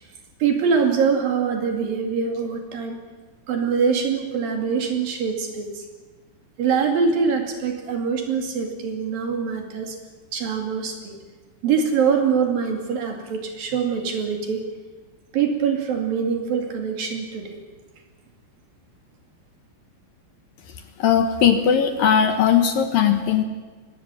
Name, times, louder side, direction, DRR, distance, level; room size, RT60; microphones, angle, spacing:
voice 1, 0.4-3.0 3.5-5.9 6.6-10.0 10.3-11.2 11.6-14.6 15.3-17.6, right 6 dB, 60° right, 3 dB, 4.0 m, -23 dB
voice 2, 21.0-23.4, left 8 dB, 65° left, 6 dB, 2.7 m, -18 dB
22.5 x 17.5 x 8.7 m, 1.3 s
omnidirectional pair, 4.9 m